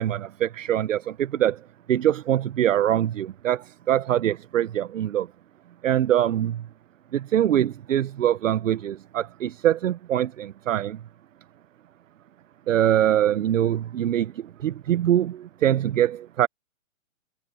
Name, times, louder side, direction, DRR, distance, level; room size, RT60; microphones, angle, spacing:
voice 1, 0.0-1.6 1.9-3.6 3.9-5.3 5.8-6.6 7.1-11.0 12.7-14.3 14.6-16.5, right 11 dB, 65° right, 1.0 m, -23 dB
hypercardioid pair, 160°, 41 cm